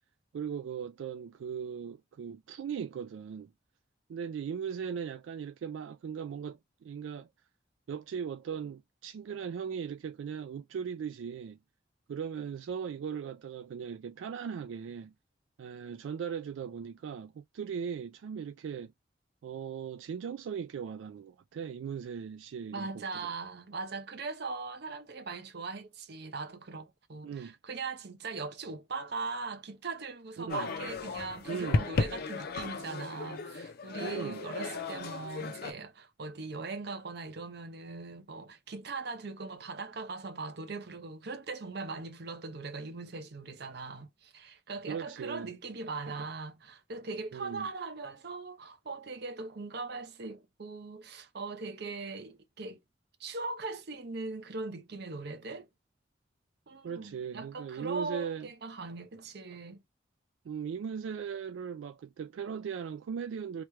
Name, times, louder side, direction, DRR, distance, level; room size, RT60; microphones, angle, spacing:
voice 1, 0.3-3.5 4.1-7.3 7.9-11.6 12.1-15.1 15.6-18.9 19.4-23.3 27.2-27.5 30.4-30.7 31.5-31.9 34.0-34.5 44.9-45.5 47.3-47.7 56.8-58.5 60.4-63.6, right 7 dB, 80° right, 0.3 m, -38 dB
voice 2, 22.7-52.8 53.2-55.7 56.7-59.8, right 3 dB, 60° right, 0.7 m, -40 dB
sound 1, 30.5-35.7, left 3 dB, 55° left, 0.5 m, -35 dB
3.0 x 2.2 x 3.0 m
head